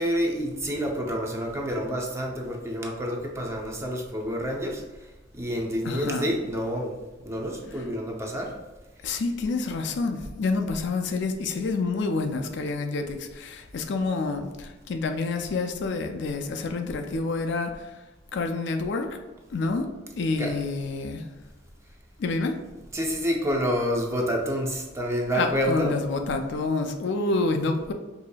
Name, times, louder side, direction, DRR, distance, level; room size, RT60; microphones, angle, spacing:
voice 1, 0.0-4.8 5.3-7.0 7.3-8.5 9.1-9.2 20.4-20.5 22.9-26.0, equal, 15° right, 0 dB, 0.5 m, -28 dB
voice 2, 5.8-6.3 9.0-18.0 18.3-19.1 19.5-19.9 20.2-21.3 22.2-22.6 25.3-27.9, left 3 dB, 65° left, 6 dB, 0.4 m, -28 dB
4.9 x 2.7 x 2.2 m, 1.1 s
head